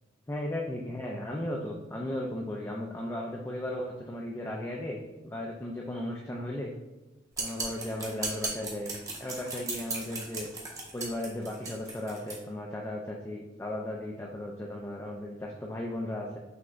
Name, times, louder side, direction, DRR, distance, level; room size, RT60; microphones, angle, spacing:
voice 1, 0.3-6.7 7.4-8.9 9.2-10.5 10.9-16.4, left 1 dB, 15° left, -1 dB, 0.4 m, -36 dB
sound 1, 7.3-12.4, right 3 dB, 20° right, 0.8 m, -36 dB
5.9 x 3.2 x 2.5 m, 1.1 s
head